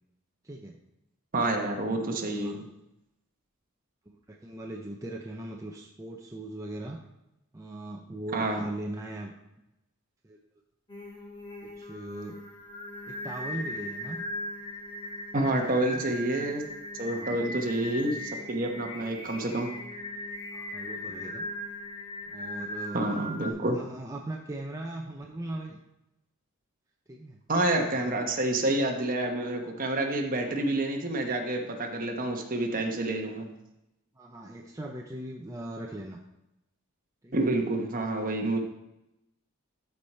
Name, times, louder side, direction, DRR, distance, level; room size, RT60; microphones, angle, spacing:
voice 1, 0.4-0.8 2.4-2.6 4.1-7.0 7.5-9.3 10.2-10.4 11.6-12.4 13.1-14.2 15.9-16.1 17.1-17.4 20.5-21.4 22.3-23.0 23.4-25.8 27.1-27.4 28.1-28.2 34.2-36.2 37.2-37.3, right 1 dB, 15° right, 0 dB, 0.6 m, -39 dB
voice 2, 1.3-2.6 8.3-8.6 15.3-16.6 17.0-19.7 22.9-23.8 27.5-33.5 37.3-38.6, right 2 dB, 40° right, 3 dB, 1.2 m, -28 dB
Singing, 10.9-23.5, left 1 dB, 20° left, 1.6 m, -39 dB
13.0 x 4.8 x 4.3 m, 0.90 s
head